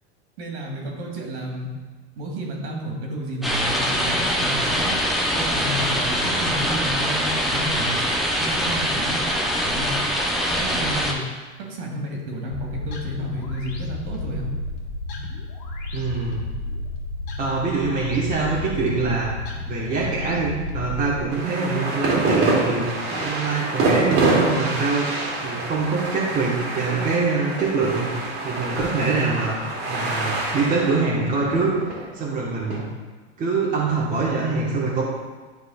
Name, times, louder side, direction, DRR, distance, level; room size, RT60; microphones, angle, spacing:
voice 1, 0.4-1.7 2.2-5.0 5.3-8.0 8.4-9.2 9.6-10.0 10.5-11.2 11.6-14.5, equal, 60° right, -1 dB, 2.1 m, -31 dB
sound 1, 3.4-11.1, equal, ahead, 0.7 m, -23 dB
sound 2, 12.5-21.2, left 2 dB, 50° left, 1.7 m, -32 dB
voice 2, 15.9-16.4 17.4-19.3 19.7-22.9 23.2-25.1 25.4-28.1 28.4-29.5 29.9-32.9 33.4-35.0, right 4 dB, 25° right, -6 dB, 1.3 m, -24 dB
sound 3, 21.3-32.8, right 2 dB, 40° right, 1.9 m, -26 dB
11.0 x 4.8 x 2.4 m, 1.3 s
hypercardioid pair, 125°, 35 cm